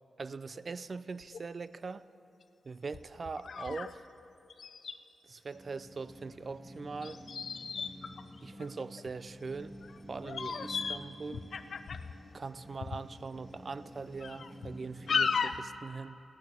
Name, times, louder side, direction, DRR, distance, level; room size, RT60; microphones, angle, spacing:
voice 1, 0.2-2.1 2.6-4.0 5.2-7.2 8.4-9.7 10.1-11.4 12.3-16.2, right 4 dB, 40° right, 16 dB, 0.4 m, -41 dB
sound 1, 0.6-0.7 1.2-1.4 2.0-2.1 2.9-3.9 4.2-4.3 4.5-4.9 7.0-9.1 9.8-10.0 10.2-11.0 11.3-12.2 12.8-13.0 13.5-13.6 14.2-14.7 15.1-15.7, left 5 dB, 60° left, 0.5 m, -35 dB
sound 2, 5.5-15.6, equal, 5° right, 1.2 m, -50 dB
15.0 x 8.4 x 8.9 m, 2.9 s
wide cardioid pair, 110°, 0 cm